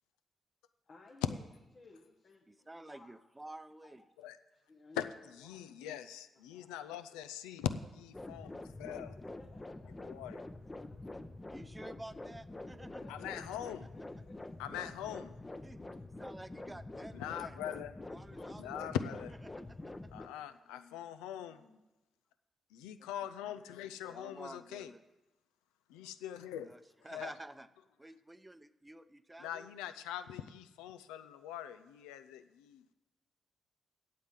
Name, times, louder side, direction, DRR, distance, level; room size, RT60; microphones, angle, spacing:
voice 1, 0.8-1.4 1.7-3.1 3.8-4.1 4.5-5.0 5.4-5.7 6.3-6.7 8.2-8.3 9.2-11.5 12.8-13.3 13.9-14.9 18.1-18.6 19.5-20.2 21.2-21.8, left 3 dB, 55° left, 1.3 m, -60 dB
voice 2, 2.5-4.0 11.1-11.2 11.5-13.0 14.7-14.8 15.6-15.8 16.2-17.7 18.1-18.9 23.0-23.1 24.1-25.0 26.7-27.7 28.0-29.7, right 1 dB, 15° right, 0.7 m, -50 dB
voice 3, 5.4-7.7 8.0-9.2 10.0-10.4 13.1-13.9 14.6-15.3 17.1-17.9 18.6-19.3 20.1-21.6 22.7-24.9 25.9-26.7 27.1-27.3 29.4-32.8, left 11 dB, 85° left, 0.4 m, -42 dB
sound 1, 8.1-20.3, left 2 dB, 25° left, 0.8 m, -47 dB
8.5 x 7.6 x 7.4 m
hypercardioid pair, 40°, 0 cm